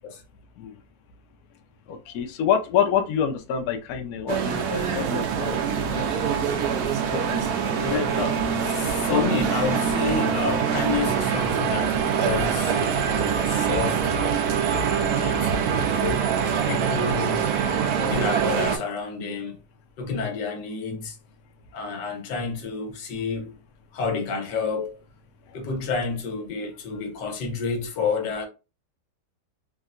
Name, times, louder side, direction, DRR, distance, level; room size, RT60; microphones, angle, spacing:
voice 1, 1.9-5.7 5.9-6.8 7.1-8.0, left 8 dB, 70° left, 1.0 m, -28 dB
sound 1, 4.3-18.8, right 7 dB, 70° right, 1.0 m, -24 dB
voice 2, 7.8-8.4 8.6-14.0 14.7-16.2 16.7-17.5 18.0-19.6 20.0-21.1 21.7-23.5 23.9-25.0 25.5-28.5, left 5 dB, 90° left, 1.4 m, -29 dB
3.6 x 2.1 x 2.4 m
omnidirectional pair, 1.9 m